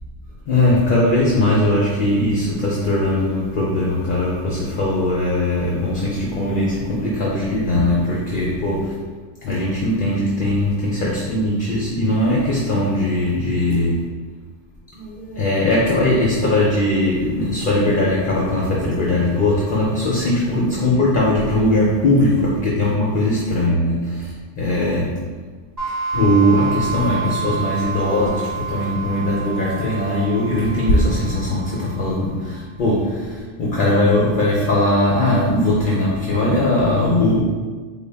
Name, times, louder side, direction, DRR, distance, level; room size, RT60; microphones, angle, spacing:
voice 1, 0.5-8.9 9.4-14.1 14.9-25.2 26.1-37.4, left 1 dB, 55° left, -4 dB, 0.6 m, -19 dB
sound 1, 25.8-32.3, right 5 dB, 35° right, 0.8 m, -29 dB
4.0 x 2.2 x 3.4 m, 1.5 s
omnidirectional pair, 1.2 m